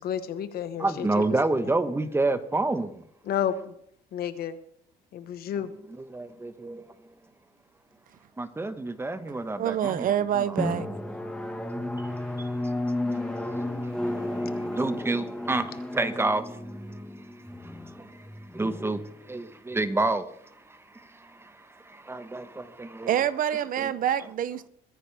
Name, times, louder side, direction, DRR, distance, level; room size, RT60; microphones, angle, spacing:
voice 1, 0.0-1.2 3.3-3.7 4.1-4.6 5.1-5.7, left 9 dB, 65° left, 1.3 m, -31 dB
voice 2, 0.8-3.0 6.0-6.8 8.4-10.6 12.0-12.1 12.4-12.5 13.0-13.2 13.8-13.9 14.7-16.5 17.6-20.3 20.7-23.2 23.8-23.9, right 2 dB, 15° right, 1.1 m, -29 dB
voice 3, 9.6-10.9 23.1-24.7, right 10 dB, 55° right, 0.7 m, -26 dB
Drum, 10.6-19.9, left 1 dB, 5° left, 1.5 m, -33 dB
22.5 x 10.0 x 3.5 m
cardioid pair, 110°, 17 cm